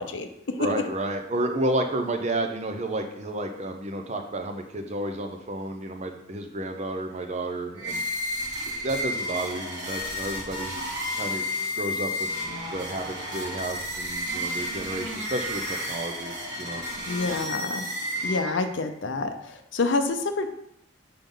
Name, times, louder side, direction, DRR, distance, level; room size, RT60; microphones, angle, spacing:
voice 1, 0.0-0.7 17.1-17.9 18.2-20.5, left 3 dB, 70° left, 7 dB, 0.7 m, -28 dB
voice 2, 0.6-8.0 8.8-10.8 11.1-11.4 11.7-12.1 12.5-16.8, right 1 dB, 35° right, 5 dB, 0.7 m, -31 dB
sound 1, 7.8-18.8, left 1 dB, 60° right, 1.6 m, -32 dB
6.7 x 5.3 x 3.9 m, 0.77 s
head